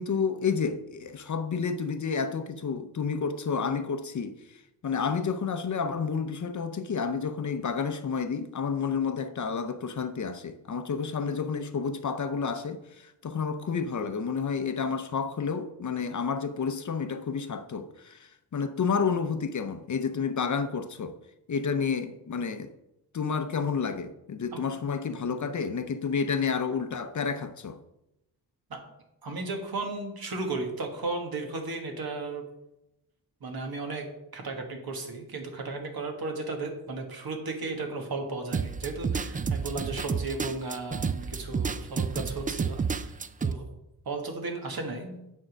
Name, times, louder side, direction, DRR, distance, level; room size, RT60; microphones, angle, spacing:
voice 1, 0.0-21.2 21.5-22.7 23.1-27.8, left 5 dB, 50° left, 0.6 m, -30 dB
voice 2, 29.2-32.4 33.4-34.0 34.3-43.7 44.0-45.2, right 3 dB, 65° right, 1.6 m, -35 dB
sound 1, 38.5-43.5, right 5 dB, 20° right, 0.3 m, -30 dB
8.9 x 3.7 x 6.2 m
wide cardioid pair, 105°, 39 cm